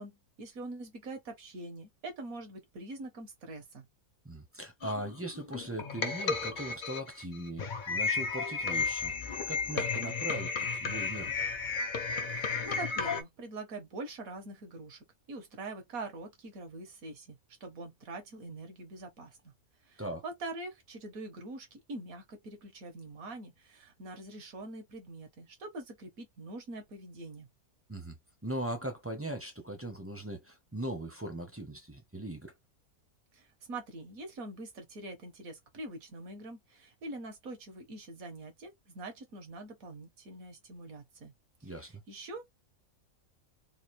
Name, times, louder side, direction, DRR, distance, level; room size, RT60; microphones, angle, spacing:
voice 1, 0.0-3.9 12.3-15.0 15.3-19.5 19.8-27.5 33.3-41.3 41.6-42.5, right 2 dB, 75° right, 1.6 m, -44 dB
voice 2, 4.2-9.1 9.5-11.4 20.0-20.2 27.9-28.2 28.4-32.5 41.6-41.9, right 1 dB, 15° right, 0.6 m, -39 dB
sound 1, 4.8-13.2, left 4 dB, 50° left, 0.6 m, -33 dB
3.7 x 2.5 x 3.1 m
omnidirectional pair, 1.5 m